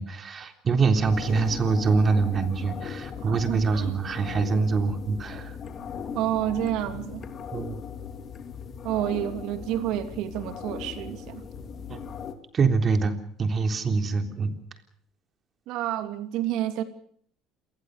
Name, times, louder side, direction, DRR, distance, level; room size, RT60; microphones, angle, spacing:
voice 1, 0.0-5.5 7.5-7.8 11.9-12.0 12.5-14.6, right 4 dB, 35° right, 7 dB, 3.6 m, -24 dB
sound 1, 1.0-12.3, left 7 dB, 45° left, 3.1 m, -38 dB
voice 2, 3.2-4.0 6.1-7.2 8.8-11.4 15.7-16.8, right 12 dB, 70° right, 9 dB, 2.7 m, -29 dB
27.5 x 19.5 x 6.6 m, 0.62 s
supercardioid pair, 95°, 0 cm